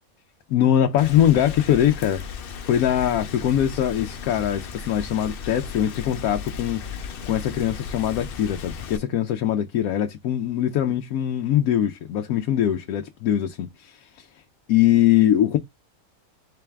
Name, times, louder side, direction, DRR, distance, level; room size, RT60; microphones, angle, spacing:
voice 1, 0.5-2.2 2.6-6.8 7.3-14.3 14.7-15.6, left 11 dB, 90° left, 1.0 m, -22 dB
Rain, 1.0-9.0, left 6 dB, 60° left, 0.6 m, -35 dB
3.8 x 3.5 x 3.3 m
omnidirectional pair, 1.5 m